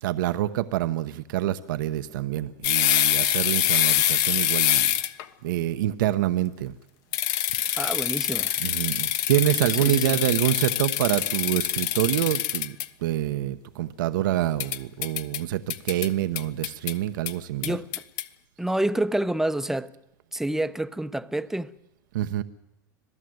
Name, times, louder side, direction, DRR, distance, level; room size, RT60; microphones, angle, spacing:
voice 1, 0.0-4.9 5.4-6.7 7.6-7.9 8.6-12.8 13.0-17.8 22.1-22.4, right 13 dB, 75° right, 1.0 m, -26 dB
sound 1, 2.6-5.2 7.1-12.9 14.6-15.4 15.7-16.1 16.4-16.9 17.3-17.4 17.6-18.2, left 12 dB, 60° left, 1.3 m, -25 dB
voice 2, 7.8-8.5 9.8-10.2 17.6-17.9 18.6-19.9 20.3-21.7, right 1 dB, 5° right, 0.9 m, -28 dB
25.5 x 17.5 x 7.9 m
hypercardioid pair, 110°, 11 cm